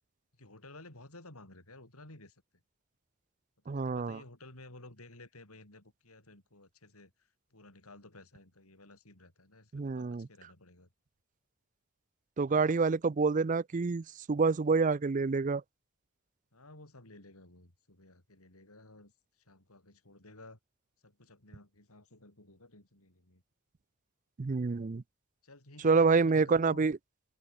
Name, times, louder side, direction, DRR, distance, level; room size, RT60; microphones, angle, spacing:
voice 1, 0.4-2.4 3.6-10.9 16.5-20.6 21.0-23.4 25.4-26.8, left 2 dB, 80° left, 5.7 m, -54 dB
voice 2, 3.7-4.2 9.7-10.3 12.4-15.6 24.4-25.0 25.8-26.9, right 4 dB, 35° right, 0.4 m, -27 dB
open air
head